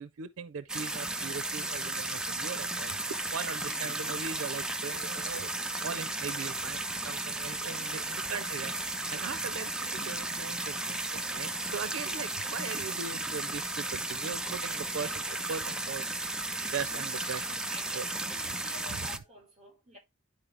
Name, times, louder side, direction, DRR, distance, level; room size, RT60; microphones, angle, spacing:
voice 1, 0.0-3.0 3.3-5.5 5.8-8.7 9.1-16.1 16.7-17.6 17.9-18.1 18.5-18.6 18.8-19.2, right 6 dB, 85° right, 0.5 m, -40 dB
sound 1, 0.7-19.2, right 2 dB, 5° right, 0.4 m, -34 dB
voice 2, 7.7-8.3 13.9-14.0 17.3-20.0, left 1 dB, 30° right, 5.7 m, -51 dB
10.5 x 4.4 x 3.4 m
head